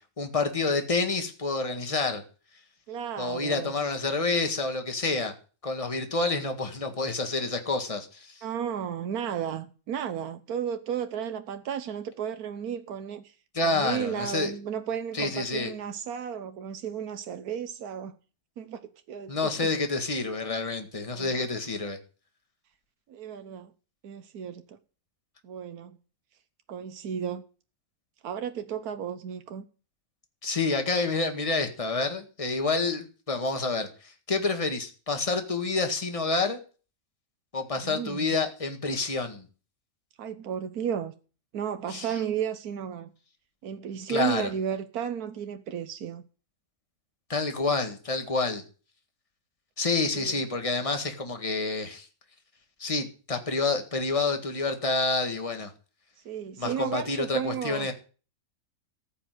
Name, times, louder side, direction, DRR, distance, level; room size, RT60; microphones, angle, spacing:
voice 1, 0.2-2.2 3.2-5.3 5.6-8.4 13.5-14.5 15.1-15.7 19.3-22.0 30.4-36.6 37.5-39.5 41.9-42.1 44.1-44.5 47.3-48.6 49.8-52.1 52.8-55.7 56.6-57.9, left 3 dB, 25° left, 1.9 m, -28 dB
voice 2, 2.9-3.7 8.4-13.3 13.6-18.1 18.6-19.7 21.1-21.5 23.1-23.7 24.0-24.8 25.4-26.0 26.7-27.4 28.2-29.6 37.8-38.4 40.2-41.1 41.5-43.1 43.6-46.2 50.1-50.4 56.2-57.9, right 8 dB, 90° right, 1.4 m, -34 dB
14.5 x 5.6 x 9.3 m
omnidirectional pair, 1.5 m